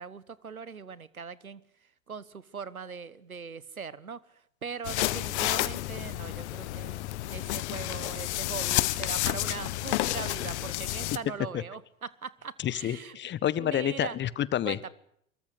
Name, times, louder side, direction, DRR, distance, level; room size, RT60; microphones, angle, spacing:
voice 1, 0.0-1.6 2.1-4.2 4.6-7.0 7.3-13.2 13.6-14.2 14.6-14.9, right 5 dB, 85° right, 19 dB, 1.4 m, -40 dB
sound 1, 4.8-11.2, left 17 dB, 55° left, 1.4 m, -30 dB
voice 2, 12.6-14.8, left 11 dB, 25° left, 19 dB, 1.3 m, -29 dB
24.5 x 22.0 x 8.3 m, 0.70 s
figure-of-eight pair, 85°, 42 cm